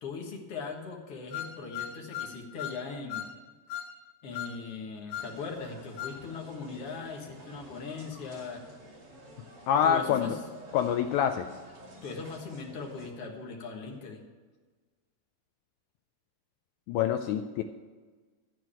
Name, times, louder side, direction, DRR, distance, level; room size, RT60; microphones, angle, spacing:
voice 1, 0.0-3.2 4.2-8.6 9.8-10.3 12.0-14.2, left 4 dB, 50° left, 1 dB, 2.0 m, -39 dB
sound 1, 1.3-2.8 3.1-3.3 3.7-3.9 4.3-4.6 5.1-5.3 6.0-6.2, left 10 dB, 70° left, 2.4 m, -37 dB
sound 2, 5.1-13.1, right 1 dB, 45° right, 3.1 m, -51 dB
voice 2, 9.7-10.4 10.7-11.5 16.9-17.6, left 9 dB, 85° left, 7 dB, 1.7 m, -26 dB
14.0 x 4.6 x 8.8 m, 1.4 s
omnidirectional pair, 4.0 m